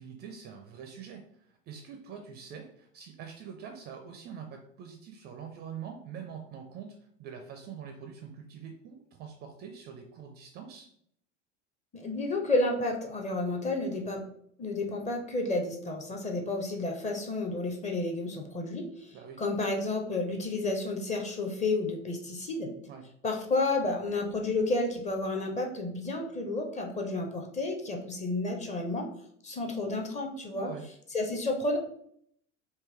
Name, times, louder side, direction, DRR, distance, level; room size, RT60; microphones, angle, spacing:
voice 1, 0.0-10.9 19.1-19.4 22.9-23.0 30.6-30.8, right 7 dB, 30° right, 4 dB, 0.4 m, -44 dB
voice 2, 11.9-14.2 14.6-19.1 19.4-22.7 23.2-29.1 29.4-30.7 31.1-31.8, left 2 dB, 20° left, 2 dB, 0.6 m, -31 dB
3.5 x 2.6 x 3.2 m, 0.67 s
figure-of-eight pair, 70°, 37 cm